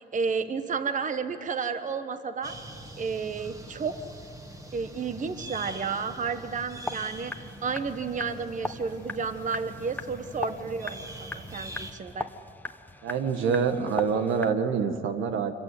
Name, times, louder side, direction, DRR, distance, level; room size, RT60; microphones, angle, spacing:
voice 1, 0.0-2.6 3.0-4.0 4.7-12.3, right 5 dB, 40° right, 9 dB, 1.2 m, -32 dB
sound 1, 2.4-11.9, right 1 dB, 15° right, 2.0 m, -43 dB
Metronome concentration challenge for for drummers, 6.8-14.5, left 2 dB, 10° left, 1.0 m, -40 dB
voice 2, 13.0-15.5, right 6 dB, 80° right, 7 dB, 1.6 m, -26 dB
25.0 x 15.0 x 9.4 m, 2.9 s
cardioid pair, 90°, 20 cm